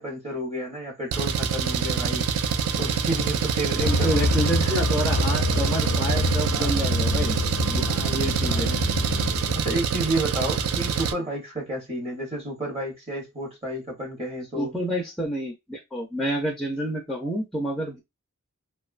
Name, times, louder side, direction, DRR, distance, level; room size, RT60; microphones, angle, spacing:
voice 1, 0.0-2.3 2.8-4.8 6.5-6.9 7.9-8.8 9.5-14.7, right 1 dB, 25° right, 0.8 m, -31 dB
Engine, 1.1-11.1, right 6 dB, 65° right, 0.3 m, -26 dB
voice 2, 3.7-7.4 7.7-7.8 8.1-8.7 14.6-18.0, right 1 dB, ahead, 0.4 m, -28 dB
sound 1, 3.8-9.6, left 1 dB, 90° left, 0.5 m, -26 dB
2.5 x 2.2 x 2.4 m
head